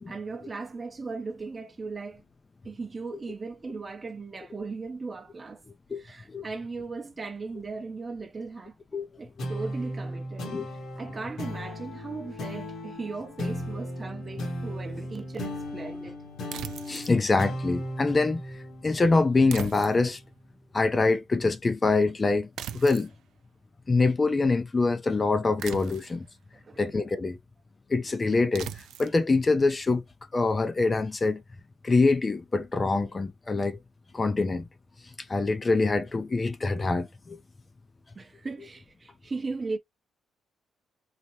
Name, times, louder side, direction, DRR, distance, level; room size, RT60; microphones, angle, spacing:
voice 1, 0.1-2.2 2.6-5.6 6.0-8.7 9.2-10.5 11.0-16.2 26.6-26.9 38.2-39.8, right 4 dB, 30° right, 0.7 m, -37 dB
sound 1, 9.4-20.2, equal, 70° left, 1.5 m, -36 dB
sound 2, 16.5-17.2 19.5-20.3 22.6-23.1 25.6-26.2 28.5-29.2, right 10 dB, 75° right, 0.4 m, -39 dB
voice 2, 16.9-18.4 18.8-20.2 20.7-22.5 22.7-23.1 23.9-26.3 26.8-27.4 27.9-30.0 30.3-31.4 31.8-33.8 34.1-34.7 35.3-37.4, left 3 dB, 30° left, 0.4 m, -24 dB
4.0 x 2.1 x 2.8 m
cardioid pair, 90°, 0 cm